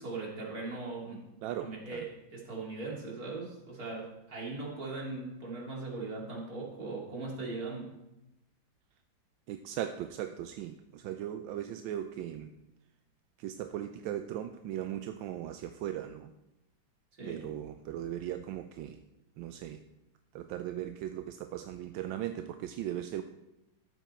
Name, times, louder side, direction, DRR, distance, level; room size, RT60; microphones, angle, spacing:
voice 1, 0.0-1.3 1.6-7.9 17.1-17.4, right 3 dB, 50° right, -3 dB, 3.1 m, -39 dB
voice 2, 1.4-2.0 9.5-12.5 13.4-16.3 17.3-19.0 19.4-19.8 20.3-23.2, right 11 dB, 80° right, 8 dB, 1.3 m, -38 dB
14.0 x 7.3 x 4.4 m, 0.93 s
omnidirectional pair, 2.1 m